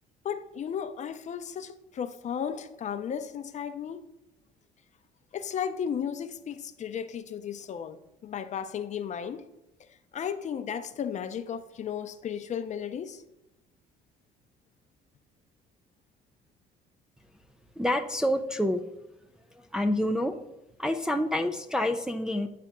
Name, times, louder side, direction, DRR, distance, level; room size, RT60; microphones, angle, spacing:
voice 1, 0.2-4.1 5.3-9.5 10.1-13.2, left 8 dB, 45° left, 0.6 m, -34 dB
voice 2, 17.8-18.8 19.5-20.4 20.8-22.5, left 1 dB, 5° right, 0.4 m, -27 dB
9.4 x 3.4 x 6.1 m
cardioid pair, 110°, 17 cm